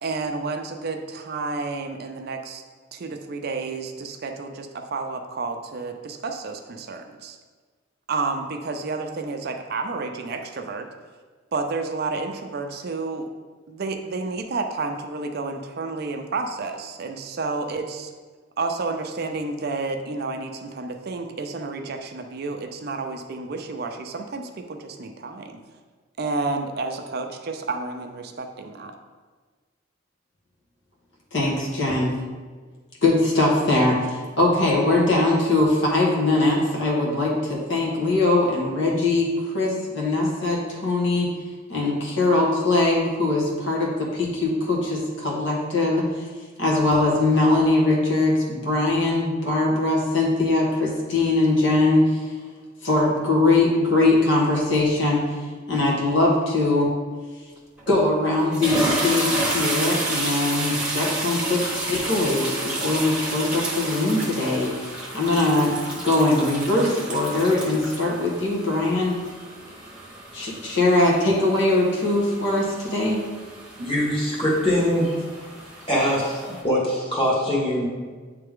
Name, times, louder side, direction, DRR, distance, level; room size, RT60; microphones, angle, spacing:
voice 1, 0.0-2.6 2.9-7.4 8.1-10.9 11.5-13.3 13.7-18.1 18.6-25.6 26.2-28.9, right 3 dB, 55° right, 5 dB, 0.5 m, -30 dB
voice 2, 31.3-32.1 33.0-41.3 41.7-46.1 46.6-52.2 52.8-55.3 55.7-56.9 57.9-69.2 70.3-73.3, left 2 dB, 65° left, -4 dB, 1.5 m, -21 dB
sound 1, 57.8-58.0 58.4-76.6, right 2 dB, 5° right, 1.1 m, -31 dB
voice 3, 73.8-75.5 75.8-77.9, equal, 30° left, -5 dB, 1.7 m, -23 dB
8.7 x 3.3 x 3.6 m, 1.4 s
head